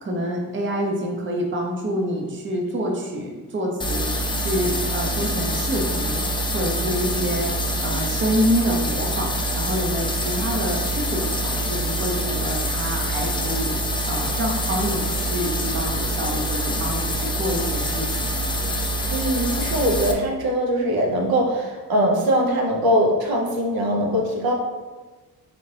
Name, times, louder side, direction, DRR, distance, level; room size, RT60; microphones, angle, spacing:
voice 1, 0.0-6.3 6.5-7.5 7.8-13.7 14.0-18.4, equal, 30° right, 0 dB, 0.7 m, -27 dB
sound 1, 3.8-20.1, equal, 15° left, 0.4 m, -25 dB
voice 2, 19.1-24.5, equal, 65° right, 0 dB, 0.8 m, -21 dB
4.0 x 2.8 x 3.2 m, 1.3 s
cardioid pair, 85°, 39 cm